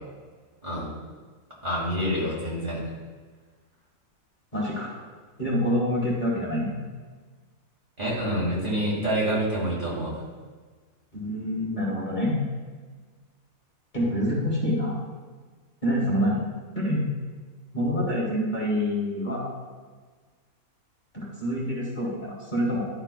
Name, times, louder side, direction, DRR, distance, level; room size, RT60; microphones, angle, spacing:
voice 1, 1.6-2.8 8.0-10.2, equal, 35° right, -6 dB, 2.2 m, -27 dB
voice 2, 4.5-5.0 5.4-6.7 11.1-12.4 13.9-14.9 15.8-16.5 16.7-17.0 17.7-19.5 21.1-22.9, equal, 35° left, -5 dB, 1.6 m, -26 dB
11.5 x 5.5 x 2.2 m, 1.4 s
omnidirectional pair, 1.5 m